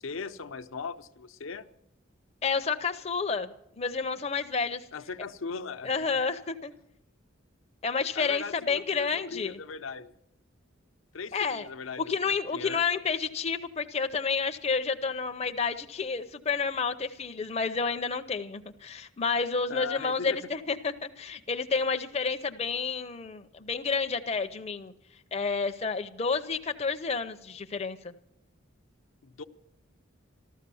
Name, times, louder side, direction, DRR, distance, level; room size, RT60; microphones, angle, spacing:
voice 1, 0.0-1.7 4.9-5.9 8.1-10.1 11.1-12.8 19.7-20.5 29.2-29.4, left 5 dB, 80° left, 9 dB, 0.8 m, -39 dB
voice 2, 2.4-4.8 5.8-6.7 7.8-9.6 11.3-11.7 12.0-24.9 25.3-28.1, left 5 dB, 30° left, 7 dB, 0.6 m, -30 dB
14.0 x 13.0 x 6.9 m, 0.77 s
head